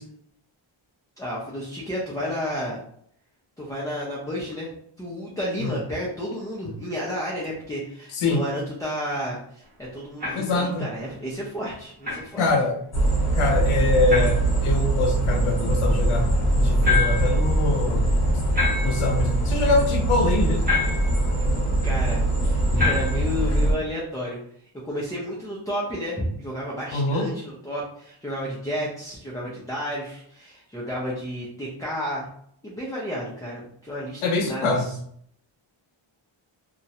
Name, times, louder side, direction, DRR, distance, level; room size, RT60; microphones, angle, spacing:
voice 1, 1.2-2.8 3.6-12.5 21.8-24.4 24.8-32.3 32.6-35.0, equal, 10° left, -5 dB, 0.3 m, -31 dB
sound 1, 10.2-10.6 12.0-12.3 14.1-14.5 16.8-17.4 18.5-19.1 20.7-21.2 22.8-23.3, left 5 dB, 20° right, 0.7 m, -26 dB
voice 2, 10.3-10.9 12.4-12.8 13.4-16.3 16.5-18.1 18.8-20.7 26.9-27.3 34.2-34.9, left 3 dB, 80° left, 3 dB, 0.6 m, -24 dB
sound 2, 12.9-23.7, right 1 dB, 35° left, 0.9 m, -22 dB
2.4 x 2.0 x 2.7 m, 0.65 s
wide cardioid pair, 155°, 49 cm